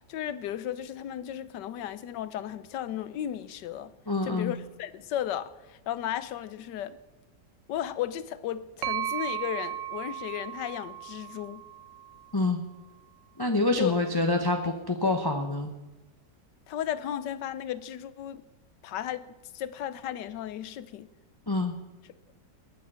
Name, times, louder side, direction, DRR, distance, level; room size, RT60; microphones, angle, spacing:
voice 1, 0.1-3.9 4.2-7.0 7.7-11.6 13.8-13.9 16.7-18.5 18.8-21.1, left 11 dB, 80° left, 1.4 m, -34 dB
voice 2, 4.1-4.5 12.3-12.6 13.4-15.7 21.5-21.7, left 2 dB, 15° left, 0.8 m, -26 dB
sound 1, 8.8-12.6, right 11 dB, 55° right, 1.0 m, -36 dB
20.5 x 9.5 x 5.7 m
omnidirectional pair, 1.9 m